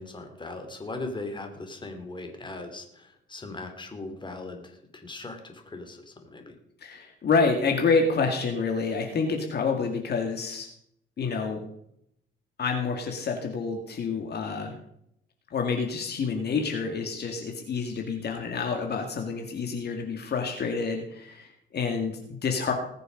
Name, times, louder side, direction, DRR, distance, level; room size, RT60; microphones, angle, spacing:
voice 1, 0.0-6.6, left 2 dB, 25° left, 5 dB, 2.9 m, -39 dB
voice 2, 6.8-10.7 11.2-11.6 12.6-14.8 15.5-22.7, left 4 dB, 55° left, 3 dB, 2.1 m, -28 dB
20.0 x 6.9 x 5.2 m, 0.73 s
cardioid pair, 90°, 20 cm